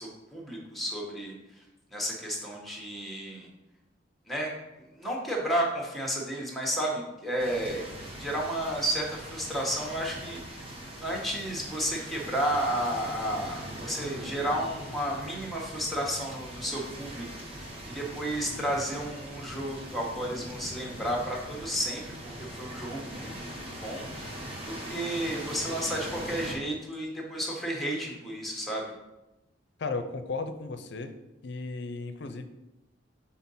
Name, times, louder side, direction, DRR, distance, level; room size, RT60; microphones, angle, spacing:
voice 1, 0.0-1.3 1.9-3.5 4.3-4.5 4.9-7.8 8.2-10.7 11.0-17.2 17.5-22.0 22.4-24.4 24.7-28.8, right 1 dB, ahead, -1 dB, 1.1 m, -32 dB
sound 1, 7.4-26.6, equal, 30° right, 1.1 m, -41 dB
voice 2, 29.8-31.1 31.4-32.5, left 3 dB, 65° left, 9 dB, 0.5 m, -35 dB
6.0 x 3.8 x 4.1 m, 0.96 s
head